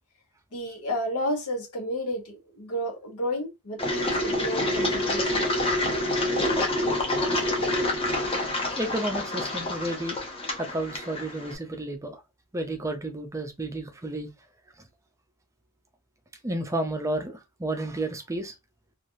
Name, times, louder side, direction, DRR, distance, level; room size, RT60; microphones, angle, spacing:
voice 1, 0.5-5.3, equal, 80° left, 1.1 m, -31 dB
Engine, 3.8-11.5, left 1 dB, 25° left, 0.7 m, -27 dB
voice 2, 8.8-12.2 12.5-14.3 16.4-18.5, right 1 dB, 15° right, 0.4 m, -31 dB
3.2 x 2.4 x 2.6 m
head